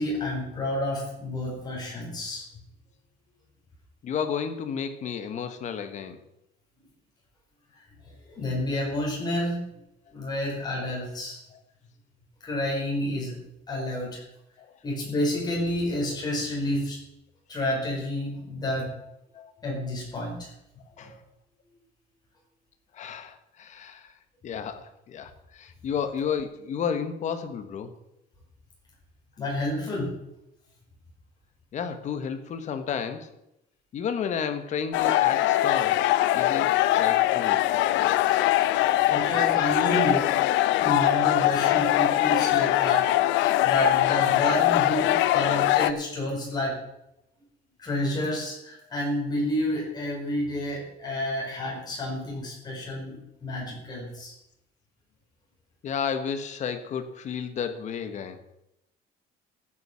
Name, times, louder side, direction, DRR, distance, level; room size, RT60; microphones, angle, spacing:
voice 1, 0.0-2.4 8.0-9.6 10.1-11.4 12.4-13.4 13.7-14.2 14.8-17.0 17.5-18.9 19.6-20.5 21.0-21.1 29.4-30.1 38.6-40.4 40.7-43.1 43.3-46.8 47.8-54.3, left 1 dB, 20° left, -2 dB, 5.1 m, -30 dB
voice 2, 4.0-6.2 14.6-14.7 19.3-19.5 21.0-21.1 22.9-24.1 24.4-27.9 31.7-33.3 33.9-36.0 36.3-37.6 55.8-58.4, left 7 dB, 40° left, 9 dB, 1.3 m, -32 dB
sound 1, 34.9-45.9, left 15 dB, 85° left, 0.7 m, -22 dB
14.0 x 8.7 x 6.3 m, 0.86 s
cardioid pair, 175°, 19 cm